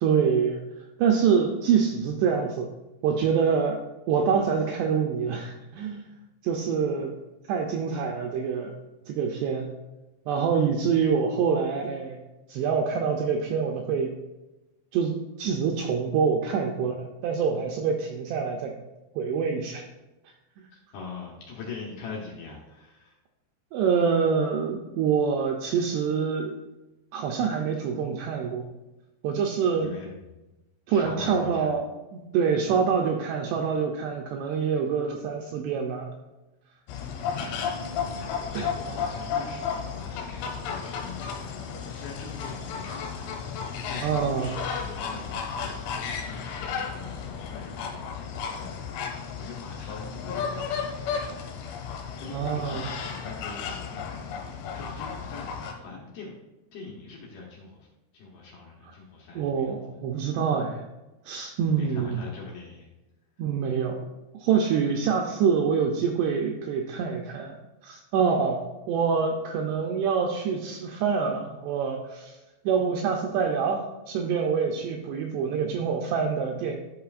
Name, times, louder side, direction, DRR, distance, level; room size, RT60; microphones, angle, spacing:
voice 1, 0.0-0.6 1.0-2.7 3.0-3.8 4.1-6.1 6.4-7.1 7.5-8.7 9.1-9.7 10.3-12.2 12.5-14.1 14.9-18.7 19.2-19.8 20.6-20.7 23.7-26.6 27.1-28.6 29.2-29.9 30.9-36.1 44.0-44.5 52.3-52.9 59.4-60.8 61.3-62.2 63.4-64.0 64.4-67.6 67.8-72.3 72.7-76.7, right 6 dB, 85° right, 2 dB, 2.4 m, -26 dB
voice 2, 20.9-23.2 29.8-30.4 30.9-31.7 38.5-51.4 51.8-55.5 55.8-56.4 56.7-57.9 58.1-59.7 61.7-62.9, left 4 dB, 70° left, -3 dB, 2.5 m, -43 dB
sound 1, 36.9-55.7, left 6 dB, 90° left, 3.4 m, -33 dB
11.5 x 5.5 x 2.4 m, 1.0 s
omnidirectional pair, 5.4 m